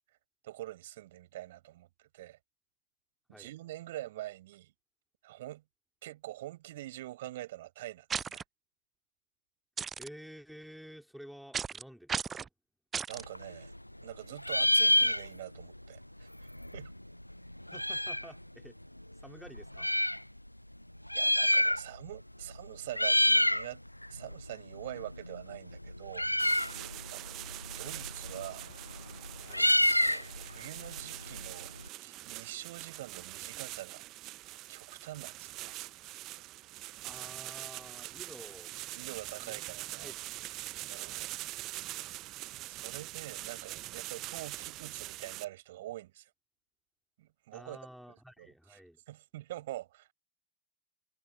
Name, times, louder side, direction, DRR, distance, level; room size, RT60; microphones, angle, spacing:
voice 1, 0.4-2.4 3.3-4.7 5.2-5.6 6.0-8.4 13.1-13.7 14.0-16.9 21.1-23.8 24.1-26.7 27.1-27.4 27.8-28.7 30.0-34.0 34.7-35.8 38.9-40.1 40.9-41.3 42.7-46.3 47.2-47.8 48.1-48.8 49.1-50.1, right 15 dB, 55° right, 7.5 m, -45 dB
sound 1, 8.1-8.4 9.8-10.1 11.5-11.8 12.1-12.5 12.9-13.2, right 6 dB, 20° right, 0.5 m, -35 dB
voice 2, 10.0-12.5 17.7-18.8 19.2-19.9 29.5-29.7 37.0-38.7 39.4-39.6 40.0-40.1 40.4-40.9 47.5-49.0, equal, ahead, 3.9 m, -51 dB
Meow, 13.1-14.1 14.4-15.7 16.0-16.1 16.2-18.4 19.0-20.2 21.0-22.1 22.4-22.6 22.9-23.7 24.0-31.9, left 1 dB, 90° left, 0.5 m, -29 dB
sound 2, 26.4-45.4, right 17 dB, 35° right, 0.9 m, -43 dB
figure-of-eight pair, 90°, 0 cm